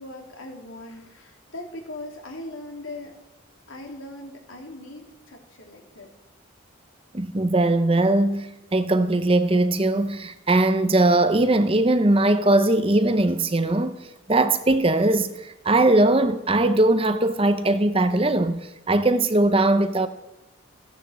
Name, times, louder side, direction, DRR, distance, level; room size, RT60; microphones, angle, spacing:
voice 1, 0.0-3.1 3.7-6.1, left 2 dB, 80° left, 3.4 m, -39 dB
voice 2, 7.1-14.0 14.3-20.1, right 2 dB, 25° right, 0.8 m, -20 dB
16.0 x 10.5 x 7.6 m
head